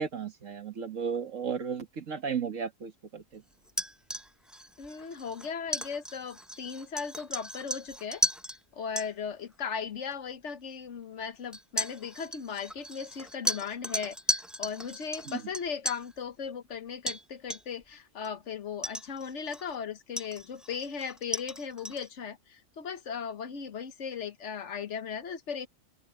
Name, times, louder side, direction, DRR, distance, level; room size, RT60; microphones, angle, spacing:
voice 1, 0.0-3.4 15.2-15.4, right 6 dB, 70° right, 2.0 m, -34 dB
sound 1, 3.7-8.6 9.0-9.1 10.1-10.2 11.5-16.1 17.1-17.2 17.5-17.8 18.2-18.3 18.8-19.7 20.2-22.1, equal, ahead, 0.4 m, -35 dB
voice 2, 4.8-8.2 8.7-25.7, left 6 dB, 65° left, 1.4 m, -37 dB
open air
omnidirectional pair, 1.4 m